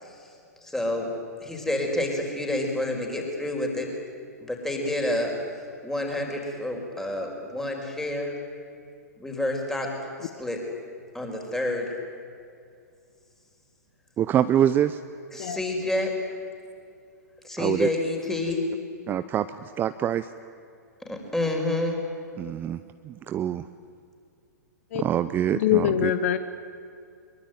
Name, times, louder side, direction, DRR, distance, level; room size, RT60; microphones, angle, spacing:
voice 1, 0.6-1.1 1.4-3.9 4.4-8.4 9.2-9.9 10.2-10.6 11.1-11.9 15.3-16.1 17.4-18.6 21.0-22.0, left 1 dB, 5° left, 1 dB, 4.9 m, -29 dB
voice 2, 14.2-15.0 17.6-17.9 19.1-20.3 22.4-23.7 24.9-26.1, right 10 dB, 20° right, 12 dB, 0.6 m, -25 dB
voice 3, 25.5-26.4, left 11 dB, 50° left, 11 dB, 1.2 m, -23 dB
23.0 x 22.5 x 9.2 m, 2.4 s
figure-of-eight pair, 110°, 9 cm